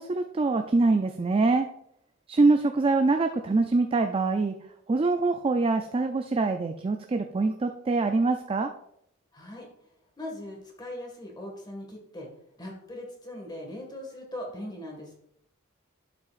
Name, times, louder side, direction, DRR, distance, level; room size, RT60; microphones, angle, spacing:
voice 1, 0.0-1.7 2.3-4.6 4.9-8.7, right 3 dB, 25° right, 6 dB, 0.4 m, -24 dB
voice 2, 9.3-9.7 10.2-12.3 12.6-15.1, left 1 dB, 20° left, 0 dB, 1.8 m, -40 dB
11.5 x 5.7 x 2.5 m, 0.74 s
head